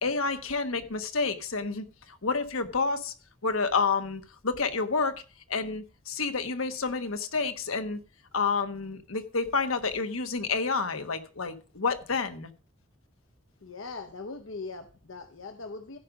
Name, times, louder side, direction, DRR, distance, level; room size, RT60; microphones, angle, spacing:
voice 1, 0.0-3.1 3.4-5.2 5.5-8.0 8.3-12.5, left 4 dB, 90° left, 1.3 m, -29 dB
voice 2, 13.6-16.0, left 3 dB, 75° left, 0.9 m, -40 dB
15.5 x 5.3 x 5.0 m
head